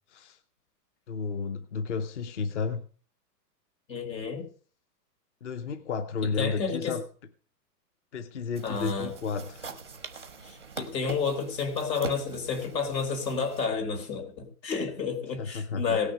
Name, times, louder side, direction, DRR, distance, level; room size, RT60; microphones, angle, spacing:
voice 1, 1.1-2.9 5.4-7.0 8.1-9.7 15.4-16.0, left 5 dB, 45° left, 0.8 m, -32 dB
voice 2, 3.9-4.5 6.2-7.0 8.6-9.1 10.5-16.1, left 5 dB, 80° left, 4.0 m, -31 dB
sound 1, 8.5-13.7, right 4 dB, 15° right, 0.5 m, -42 dB
17.5 x 6.4 x 6.4 m
hypercardioid pair, 180°, 50 cm